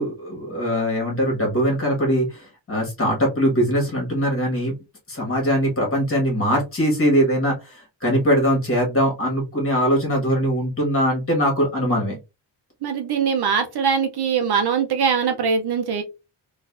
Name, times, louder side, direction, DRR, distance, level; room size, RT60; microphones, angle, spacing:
voice 1, 0.0-4.7 5.1-12.2, equal, 30° left, 1.6 m, -21 dB
voice 2, 12.8-16.0, right 6 dB, 60° right, 0.6 m, -22 dB
3.9 x 2.5 x 2.4 m
wide cardioid pair, 150°, 44 cm